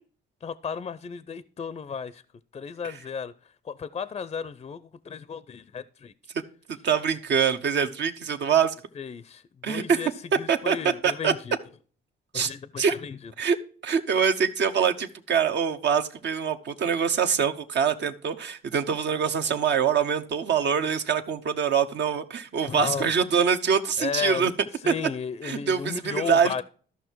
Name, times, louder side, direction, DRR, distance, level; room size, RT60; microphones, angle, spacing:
voice 1, 0.4-2.2 2.5-3.3 3.6-6.1 9.0-10.1 10.4-11.6 12.3-13.3 22.7-23.1 24.0-24.5 24.8-26.6, left 6 dB, 30° left, 0.5 m, -34 dB
voice 2, 6.8-8.7 9.6-10.0 10.5-10.8 11.0-11.3 12.3-12.5 12.8-12.9 13.4-13.6 13.8-24.5 24.9-25.0 25.4-26.6, right 7 dB, 65° right, 0.9 m, -24 dB
13.5 x 5.7 x 4.6 m
cardioid pair, 90°, 20 cm